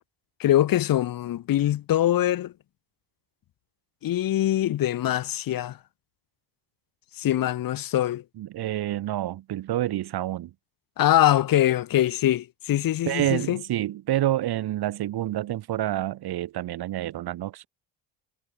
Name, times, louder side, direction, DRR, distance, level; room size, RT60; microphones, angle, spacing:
voice 1, 0.4-2.5 4.0-5.8 7.2-8.2 11.0-13.6, left 12 dB, 50° left, 0.9 m, -23 dB
voice 2, 8.4-10.5 13.0-17.7, right 13 dB, 60° right, 1.6 m, -28 dB
hypercardioid pair, 55°, 44 cm